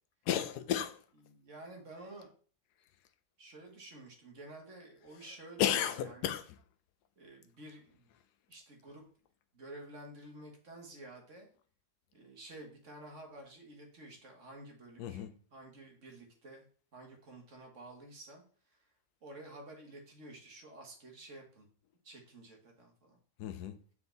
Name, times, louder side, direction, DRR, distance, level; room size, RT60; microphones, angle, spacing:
voice 1, 0.3-1.0 5.6-6.4 15.0-15.3 23.4-23.8, left 10 dB, 90° left, 1.2 m, -33 dB
voice 2, 1.2-2.3 3.4-6.4 7.2-8.1 8.5-9.0 9.5-11.5 12.1-16.7 16.9-18.4 18.7-18.8 19.2-21.7 22.0-23.2, right 2 dB, 50° right, 1.9 m, -51 dB
7.0 x 4.7 x 3.9 m
omnidirectional pair, 1.7 m